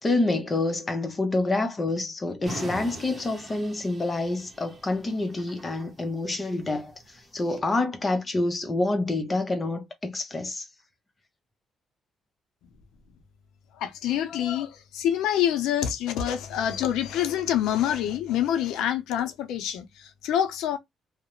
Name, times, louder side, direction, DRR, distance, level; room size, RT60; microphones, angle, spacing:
voice 1, 0.0-10.7, left 2 dB, 30° left, 0.6 m, -27 dB
sound 1, 2.4-7.6, right 1 dB, 25° right, 0.9 m, -42 dB
voice 2, 13.7-20.8, left 10 dB, 90° left, 0.5 m, -26 dB
2.4 x 2.0 x 2.9 m
cardioid pair, 90°, 0 cm